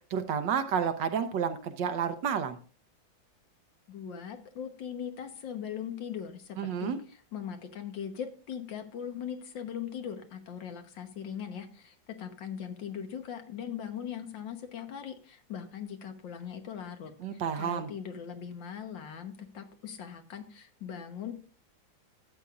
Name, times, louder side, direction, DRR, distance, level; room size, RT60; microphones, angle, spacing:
voice 1, 0.1-2.6 6.6-7.0 17.2-17.9, right 7 dB, 70° right, 9 dB, 1.5 m, -30 dB
voice 2, 3.9-21.3, left 8 dB, 70° left, 6 dB, 1.9 m, -40 dB
12.5 x 8.3 x 2.4 m, 0.39 s
omnidirectional pair, 2.1 m